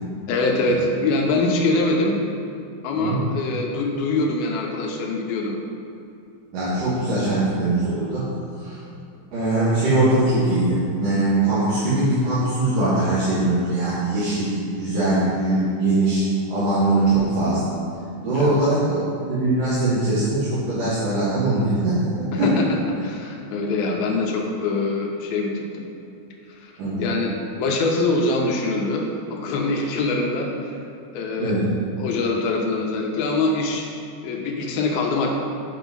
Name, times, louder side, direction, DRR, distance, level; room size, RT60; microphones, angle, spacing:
voice 1, 0.3-2.2 2.8-5.6 18.3-18.6 22.3-22.7 23.0-25.9 26.5-26.7 27.0-30.7 31.1-31.6 32.0-33.9 34.2-35.3, left 3 dB, 75° left, 0 dB, 2.5 m, -24 dB
voice 2, 6.5-8.3 8.5-8.8 9.3-16.2 16.5-17.7 18.2-22.5 26.8-27.1 31.4-31.7, right 2 dB, 75° right, -13 dB, 4.3 m, -21 dB
9.4 x 5.4 x 5.4 m, 2.7 s
omnidirectional pair, 4.7 m